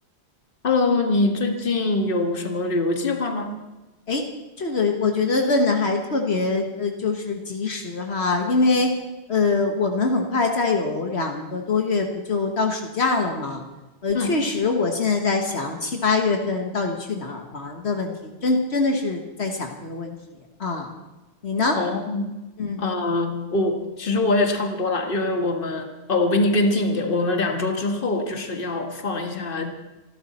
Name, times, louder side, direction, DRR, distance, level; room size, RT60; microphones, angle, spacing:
voice 1, 0.6-3.6 14.1-14.4 21.8-22.3 22.8-29.7, left 2 dB, 55° left, 4 dB, 1.8 m, -23 dB
voice 2, 4.6-8.9 9.3-13.6 14.0-20.1 20.6-20.9 21.4-21.8 22.6-22.8, left 3 dB, 70° left, 3 dB, 1.7 m, -23 dB
27.0 x 12.0 x 4.3 m, 1.1 s
omnidirectional pair, 1.1 m